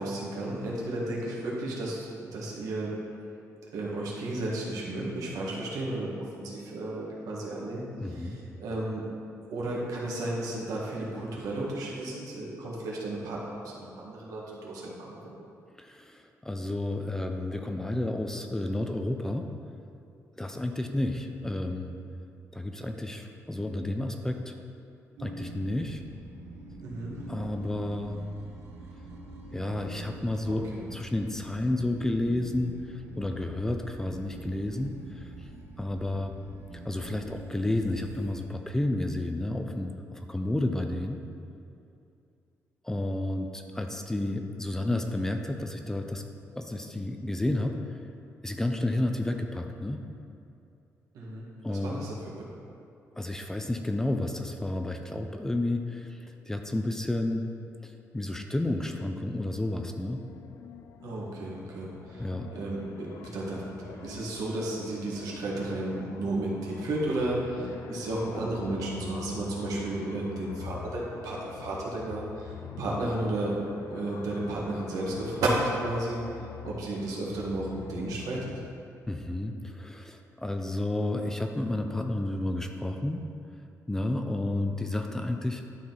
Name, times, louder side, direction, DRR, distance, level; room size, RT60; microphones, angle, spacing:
voice 1, 0.0-2.9 3.7-9.0 9.5-15.4 26.8-27.1 30.5-30.8 51.1-52.3 61.0-73.6 73.9-78.4, right 2 dB, 85° right, -4 dB, 1.7 m, -33 dB
voice 2, 8.0-8.4 15.8-19.5 20.4-21.9 22.5-24.6 25.2-26.0 27.3-28.2 29.5-35.5 35.8-36.3 36.8-41.2 42.8-46.2 46.6-48.0 48.4-50.0 51.6-52.0 53.2-56.2 56.4-57.5 57.8-60.2 62.2-62.5 79.1-83.2 83.9-85.6, left 1 dB, 10° left, 4 dB, 0.4 m, -31 dB
sound 1, 25.2-38.3, right 3 dB, 55° right, 1.2 m, -45 dB
sound 2, 59.8-78.7, left 8 dB, 70° left, 0.4 m, -45 dB
11.5 x 4.5 x 4.0 m, 2.6 s
cardioid pair, 150°, 6 cm